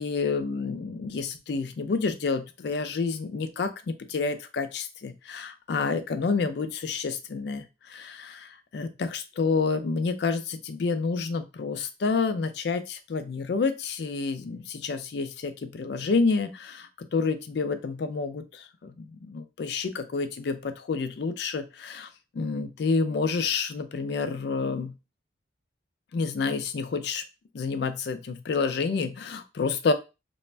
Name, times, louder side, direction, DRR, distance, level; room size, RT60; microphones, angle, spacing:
voice 1, 0.0-22.1 22.3-25.0 26.1-27.2 27.5-29.9, left 4 dB, 60° left, 9 dB, 0.4 m, -29 dB
2.4 x 2.1 x 3.1 m, 0.27 s
head